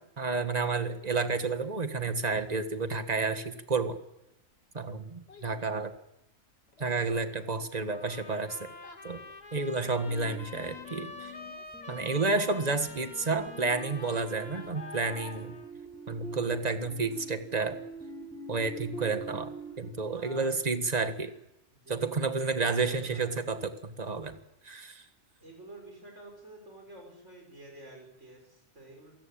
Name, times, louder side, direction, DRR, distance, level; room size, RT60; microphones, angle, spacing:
voice 1, 0.0-4.0 4.7-5.9 6.8-8.7 9.0-9.2 9.5-11.3 11.9-15.5 16.1-17.8 18.5-19.5 19.8-21.3 21.9-24.4 24.6-25.1, right 4 dB, 35° right, 9 dB, 1.7 m, -31 dB
Child speech kid speaking, 4.1-16.8 17.1-17.5 18.0-18.1, left 3 dB, 65° left, 2.6 m, -52 dB
voice 2, 6.8-7.5 20.0-20.7 21.7-23.3 25.4-29.1, right 1 dB, 90° right, 2 dB, 7.0 m, -50 dB
sound 1, 7.9-15.7, left 3 dB, 40° left, 2.0 m, -47 dB
sound 2, 10.1-19.9, right 2 dB, 5° left, 6.1 m, -45 dB
27.5 x 17.0 x 8.8 m, 0.91 s
omnidirectional pair, 1.2 m